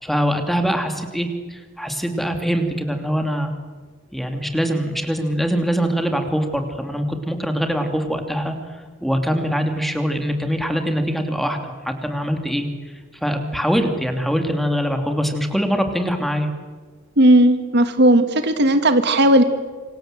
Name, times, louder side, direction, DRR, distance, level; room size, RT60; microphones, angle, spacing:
voice 1, 0.0-3.5 4.1-8.6 9.0-12.7 13.2-16.5, equal, ahead, 5 dB, 2.8 m, -23 dB
voice 2, 17.2-19.4, right 1 dB, 55° right, 9 dB, 1.7 m, -15 dB
27.5 x 25.5 x 7.8 m, 1.4 s
head